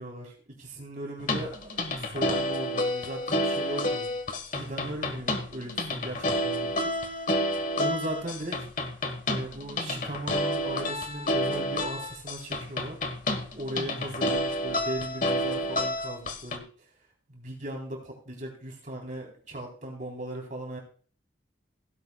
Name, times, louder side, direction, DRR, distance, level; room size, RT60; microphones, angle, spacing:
voice 1, 0.0-4.1 4.5-7.3 7.8-8.7 9.3-13.0 13.5-16.9 17.3-20.8, right 1 dB, 45° right, 0 dB, 3.6 m, -38 dB
sound 1, 1.2-16.6, left 1 dB, 45° left, 1.4 m, -29 dB
16.5 x 11.0 x 2.3 m, 0.42 s
head